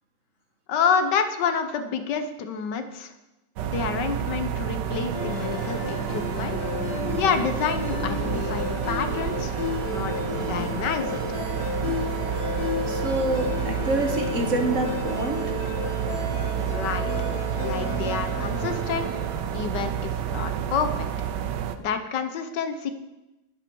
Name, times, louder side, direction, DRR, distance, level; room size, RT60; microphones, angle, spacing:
voice 1, 0.7-3.1 3.6-6.6 7.1-11.2 16.7-17.1 17.6-19.1 19.5-21.1 21.8-22.9, left 6 dB, 85° left, 9 dB, 1.6 m, -28 dB
sound 1, 3.6-21.8, right 9 dB, 80° right, 1.4 m, -30 dB
sound 2, 5.1-19.7, left 4 dB, 65° left, 2.2 m, -32 dB
voice 2, 12.9-15.4, right 2 dB, 50° right, 4 dB, 1.6 m, -27 dB
11.0 x 10.5 x 4.7 m, 1.0 s
omnidirectional pair, 1.8 m